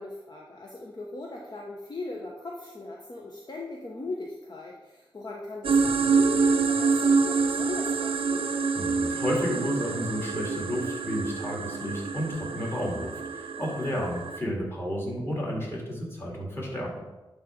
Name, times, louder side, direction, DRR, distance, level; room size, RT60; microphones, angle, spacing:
voice 1, 0.0-8.5 13.9-14.0, left 2 dB, 45° left, -2 dB, 1.0 m, -39 dB
sound 1, 5.6-14.4, right 4 dB, 75° right, 0.5 m, -26 dB
voice 2, 8.7-17.0, equal, 25° left, -3 dB, 2.8 m, -31 dB
11.0 x 3.6 x 5.2 m, 1.1 s
wide cardioid pair, 85°, 9 cm